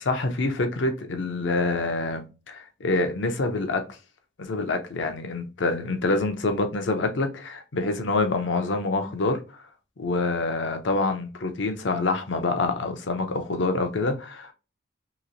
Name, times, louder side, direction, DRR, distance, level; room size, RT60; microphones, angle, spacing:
voice 1, 0.0-3.8 4.4-9.6 10.0-14.5, left 3 dB, 65° left, 0.6 m, -26 dB
3.0 x 2.8 x 2.6 m
head